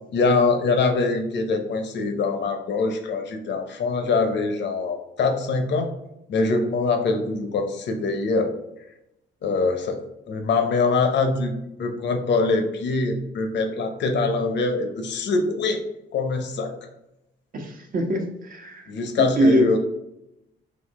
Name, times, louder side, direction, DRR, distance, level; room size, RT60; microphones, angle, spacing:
voice 1, 0.1-5.9 6.3-8.5 9.4-10.0 10.3-15.8 16.1-16.7 18.9-19.8, left 3 dB, 65° left, 5 dB, 0.8 m, -23 dB
voice 2, 17.5-18.9 19.2-19.7, equal, 45° right, 3 dB, 1.0 m, -23 dB
4.2 x 2.7 x 4.1 m, 0.88 s
cardioid pair, 90°, 20 cm